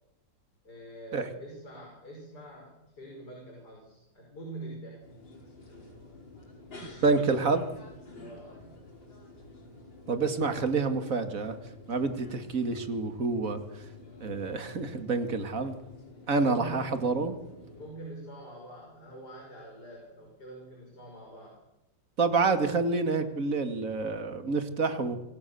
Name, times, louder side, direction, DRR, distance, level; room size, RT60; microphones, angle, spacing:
voice 1, 0.6-5.0 8.2-8.8 16.3-17.0 17.8-21.6, right 2 dB, 55° left, 0 dB, 6.3 m, -45 dB
sound 1, 5.0-17.9, left 2 dB, 75° left, 6.0 m, -50 dB
voice 2, 7.0-7.7 10.1-11.6 11.9-13.6 14.2-15.8 16.3-17.3 22.2-25.2, right 4 dB, 45° right, 8 dB, 2.7 m, -28 dB
27.0 x 24.0 x 7.1 m, 0.96 s
omnidirectional pair, 2.1 m